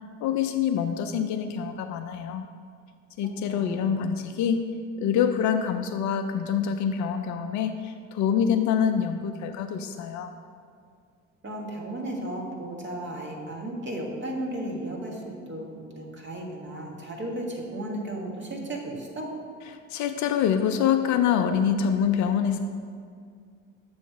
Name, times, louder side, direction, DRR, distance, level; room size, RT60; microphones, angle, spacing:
voice 1, 0.2-2.5 3.2-4.6 5.0-10.3 19.6-22.6, left 8 dB, 50° left, 8 dB, 0.5 m, -25 dB
voice 2, 11.4-15.2 15.5-19.3, right 1 dB, 30° right, 0 dB, 1.5 m, -34 dB
7.1 x 3.2 x 5.8 m, 2.2 s
hypercardioid pair, 65°, 37 cm